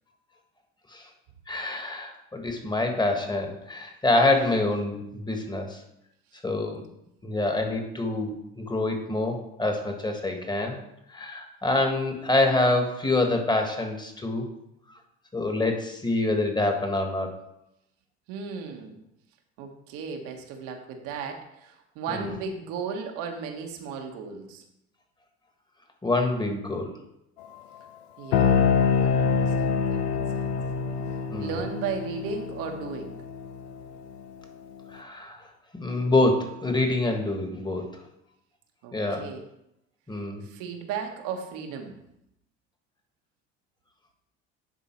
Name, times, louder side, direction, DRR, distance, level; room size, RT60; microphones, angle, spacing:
voice 1, 1.5-5.8 6.4-6.8 7.2-10.8 11.1-14.5 15.3-17.4 22.1-22.3 26.0-26.9 31.3-31.5 34.9-35.4 35.7-37.9 38.9-39.3 40.1-40.4, left 2 dB, 15° left, 4 dB, 1.6 m, -26 dB
voice 2, 18.3-19.0 19.6-24.6 28.2-30.5 31.1-33.2 38.8-39.4 40.4-41.9, right 6 dB, 75° right, 4 dB, 1.3 m, -36 dB
sound 1, 28.3-33.9, left 6 dB, 90° left, 0.7 m, -25 dB
10.0 x 3.8 x 4.5 m, 0.83 s
supercardioid pair, 80°, 32 cm